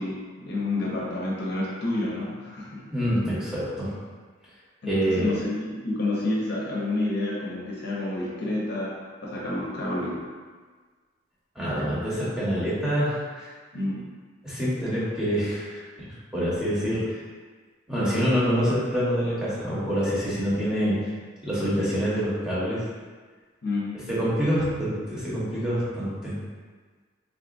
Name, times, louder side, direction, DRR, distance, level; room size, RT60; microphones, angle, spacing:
voice 1, 0.0-2.9 4.8-10.3 13.7-14.0 23.6-23.9, left 2 dB, 60° left, -5 dB, 0.6 m, -29 dB
voice 2, 2.9-3.9 4.9-5.3 11.5-13.5 14.4-17.2 17.9-21.0 21.4-22.8 24.1-26.3, equal, 5° right, -10 dB, 0.9 m, -26 dB
3.7 x 2.3 x 2.5 m, 1.5 s
head